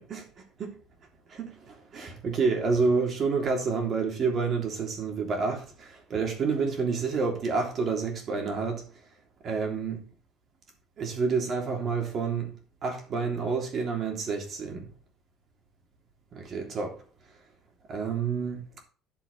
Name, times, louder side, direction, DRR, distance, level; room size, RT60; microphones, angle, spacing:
voice 1, 0.1-0.7 1.3-8.8 9.4-10.0 11.0-12.5 12.8-14.9 16.3-16.9 17.9-18.6, right 4 dB, 35° right, 3.4 m, -29 dB
10.5 x 7.6 x 4.2 m
cardioid pair, 160°, 0 cm